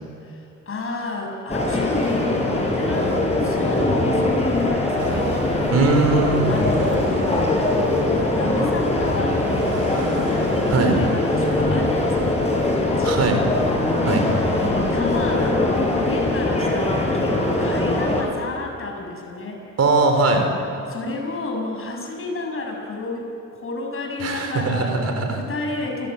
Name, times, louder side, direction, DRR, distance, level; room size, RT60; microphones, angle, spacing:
voice 1, 0.2-5.5 6.5-7.4 8.3-13.2 14.5-19.6 20.9-25.0 25.3-26.1, left 2 dB, 45° left, 1 dB, 7.4 m, -31 dB
sound 1, 1.5-18.2, left 2 dB, 20° left, 7.6 m, -21 dB
sound 2, 5.0-13.4, right 4 dB, 75° right, 5.0 m, -36 dB
voice 2, 5.7-6.4 10.7-11.0 13.0-13.4 14.1-14.3 19.8-20.5 24.2-25.4, right 3 dB, 55° right, 5 dB, 4.8 m, -20 dB
28.0 x 20.0 x 8.9 m, 2.8 s
cardioid pair, 90°, 30 cm